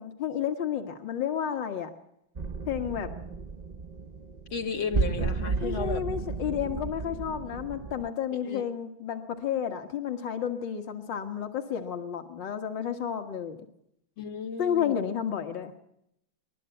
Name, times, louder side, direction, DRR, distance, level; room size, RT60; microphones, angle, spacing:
voice 1, 0.0-1.9 2.7-3.1 5.6-13.6 14.6-15.7, left 9 dB, 65° left, 4 dB, 2.3 m, -31 dB
sound 1, 2.3-8.1, right 4 dB, 80° right, 0.3 m, -33 dB
voice 2, 4.5-6.0 8.4-8.6 14.2-15.1, left 5 dB, 85° left, 3 dB, 3.2 m, -34 dB
29.0 x 12.5 x 9.2 m, 0.77 s
omnidirectional pair, 2.2 m